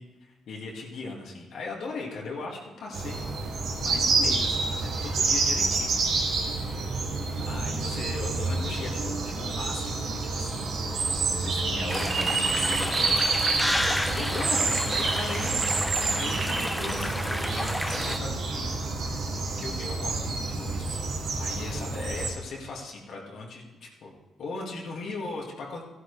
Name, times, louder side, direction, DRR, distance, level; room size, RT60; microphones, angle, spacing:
voice 1, 0.0-6.4 7.4-13.6 14.1-24.1 24.4-25.8, left 3 dB, 70° left, -2 dB, 2.1 m, -39 dB
sound 1, 2.9-22.3, right 3 dB, 70° right, 2.3 m, -28 dB
sound 2, 11.9-18.2, equal, 5° left, 0.7 m, -30 dB
14.5 x 11.5 x 3.3 m, 1.1 s
cardioid pair, 90°, 0 cm